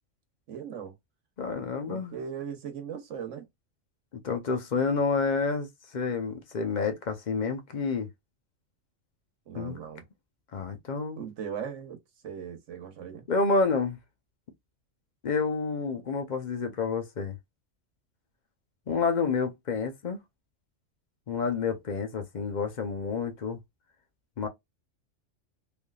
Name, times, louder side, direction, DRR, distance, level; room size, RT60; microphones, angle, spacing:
voice 1, 0.5-0.9 1.8-3.5 9.5-10.0 11.2-12.0 12.2-13.3, right 7 dB, 80° right, 1.2 m, -38 dB
voice 2, 1.4-2.2 4.1-5.7 5.9-8.1 9.5-9.8 10.5-11.2 13.3-14.0 15.2-17.4 18.9-20.2 21.3-23.6 24.4-24.5, left 4 dB, 45° left, 0.7 m, -29 dB
3.3 x 2.6 x 2.3 m
omnidirectional pair, 1.3 m